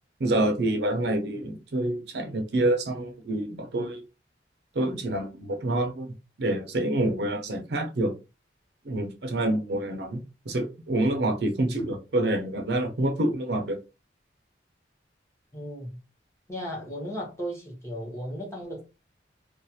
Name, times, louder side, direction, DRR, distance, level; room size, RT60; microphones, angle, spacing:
voice 1, 0.2-4.0 4.7-8.2 8.8-13.8, right 1 dB, 65° right, 0.6 m, -27 dB
voice 2, 15.5-16.0 16.5-18.8, equal, 15° left, 0.9 m, -35 dB
2.3 x 2.3 x 2.7 m
head